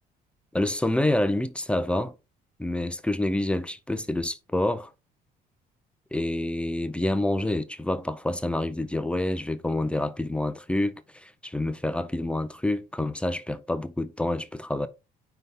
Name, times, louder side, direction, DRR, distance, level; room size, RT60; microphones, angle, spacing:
voice 1, 0.5-2.1 2.6-4.9 6.1-14.9, left 1 dB, 5° left, 0.7 m, -27 dB
5.8 x 5.5 x 3.9 m
cardioid pair, 110°, 17 cm